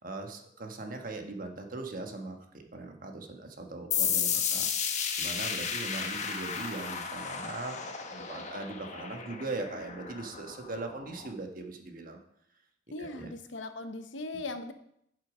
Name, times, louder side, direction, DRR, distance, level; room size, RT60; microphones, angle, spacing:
voice 1, 0.0-4.7 5.2-12.2 13.0-13.3, right 2 dB, 45° right, 4 dB, 1.2 m, -40 dB
sound 1, 3.9-11.3, left 7 dB, 35° left, 1.0 m, -33 dB
voice 2, 12.9-14.7, left 2 dB, 70° left, 8 dB, 0.9 m, -39 dB
11.0 x 6.5 x 5.0 m, 0.73 s
head